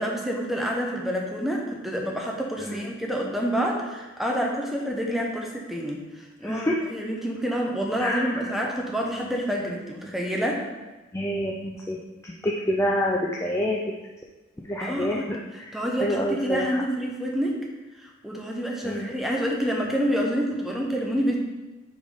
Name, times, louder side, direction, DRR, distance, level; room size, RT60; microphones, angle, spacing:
voice 1, 0.0-10.6 14.8-15.3 15.7-17.6 18.0-21.4, equal, ahead, -1 dB, 0.8 m, -28 dB
voice 2, 6.4-6.7 8.0-8.5 11.1-12.0 12.2-13.8 14.6-16.7 18.8-19.1, left 1 dB, 15° left, -2 dB, 0.4 m, -28 dB
5.2 x 4.0 x 4.9 m, 1.2 s
head